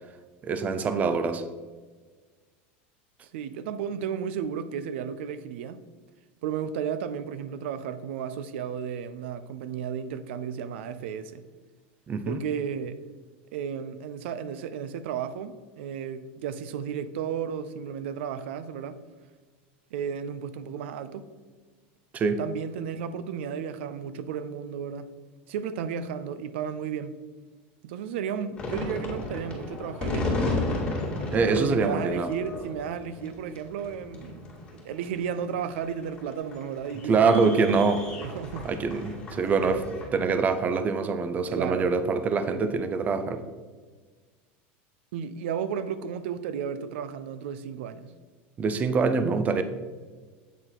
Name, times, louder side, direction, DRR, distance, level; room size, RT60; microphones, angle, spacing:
voice 1, 0.4-1.4 12.1-12.4 22.1-22.4 31.3-32.3 37.1-38.1 38.6-43.4 48.6-49.6, right 4 dB, 25° right, 0.5 m, -24 dB
voice 2, 3.2-5.8 6.4-11.4 12.2-13.0 13.5-19.0 19.9-21.3 22.4-25.1 25.5-27.1 27.8-30.5 31.5-37.7 38.2-38.7 41.5-41.9 45.1-48.1, right 7 dB, 80° right, 0.4 m, -33 dB
sound 1, 28.6-40.1, left 2 dB, 15° left, 2.2 m, -34 dB
8.1 x 3.8 x 4.4 m
supercardioid pair, 135°, 6 cm